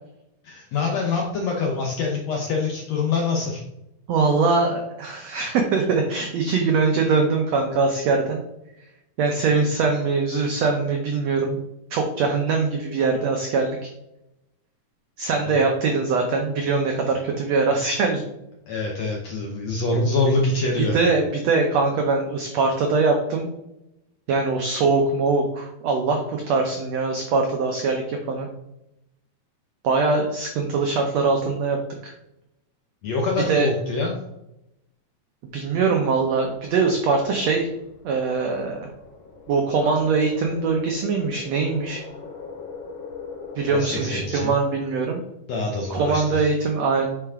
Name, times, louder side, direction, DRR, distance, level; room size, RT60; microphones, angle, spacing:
voice 1, 0.4-3.6 15.5-15.6 18.7-21.0 33.0-34.1 43.7-44.5 45.5-46.5, left 3 dB, 75° left, 0 dB, 1.5 m, -25 dB
voice 2, 4.1-8.4 9.2-11.6 11.9-13.9 15.2-18.2 20.8-23.5 24.3-28.5 29.8-32.1 33.5-33.7 35.5-37.7 38.0-38.9 39.5-42.0 43.6-45.2 45.9-47.1, right 4 dB, 85° right, 3 dB, 1.4 m, -22 dB
sound 1, 35.8-44.5, left 4 dB, 60° left, 1.7 m, -41 dB
8.8 x 4.9 x 3.6 m, 0.87 s
omnidirectional pair, 4.1 m